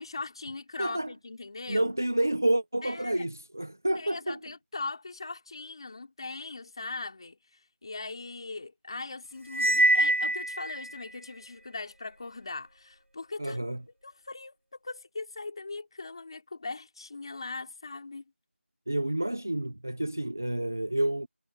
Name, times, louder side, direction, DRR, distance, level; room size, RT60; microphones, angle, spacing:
voice 1, 0.0-1.9 2.8-3.3 3.9-13.6 14.0-18.2, left 3 dB, 25° left, 4.6 m, -40 dB
voice 2, 0.8-1.1 1.7-4.4 13.4-13.8 18.9-21.3, right 1 dB, 15° right, 0.5 m, -29 dB
Cymbal, 9.5-11.0, right 1 dB, 85° right, 6.5 m, -24 dB
figure-of-eight pair, 175°, 7 cm